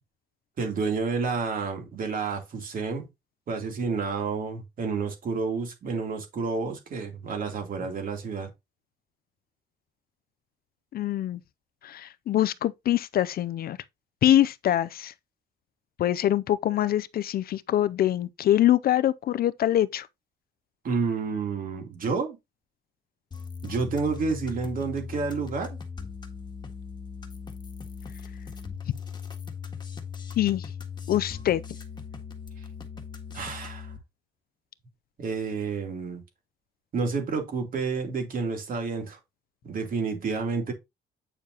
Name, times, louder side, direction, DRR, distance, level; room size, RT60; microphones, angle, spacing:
voice 1, 0.6-3.1 3.5-8.5 20.8-22.4 23.6-25.8 33.3-33.9 35.2-36.2 36.9-39.2 39.6-40.7, right 4 dB, 45° right, 3.1 m, -30 dB
voice 2, 10.9-11.4 11.8-13.8 14.2-15.1 16.0-20.1 30.4-30.7 31.1-31.6, left 12 dB, 50° left, 0.5 m, -24 dB
sound 1, 23.3-34.0, left 6 dB, 25° left, 1.6 m, -39 dB
8.8 x 6.7 x 2.9 m
cardioid pair, 140°, 19 cm